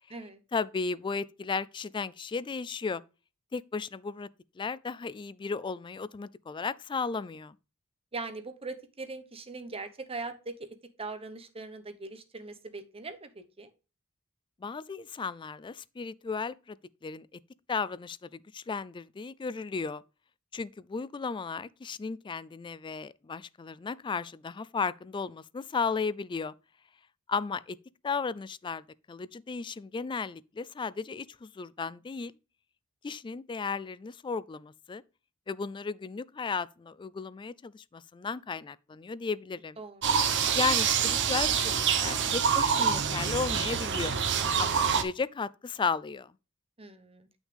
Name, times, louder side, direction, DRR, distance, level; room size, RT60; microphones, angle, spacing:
voice 1, 0.5-3.0 3.5-4.3 4.6-7.6 14.6-16.8 17.0-17.3 17.7-20.0 20.5-26.5 27.3-27.8 28.0-28.8 29.1-32.3 33.0-35.0 35.5-39.8 40.5-41.7 42.0-44.1 44.6-46.3, left 5 dB, 20° left, 0.3 m, -34 dB
voice 2, 8.1-13.7 39.8-40.2 46.8-47.3, right 3 dB, 25° right, 1.0 m, -41 dB
sound 1, 40.0-45.0, right 7 dB, 55° right, 0.9 m, -26 dB
8.3 x 6.2 x 3.3 m
head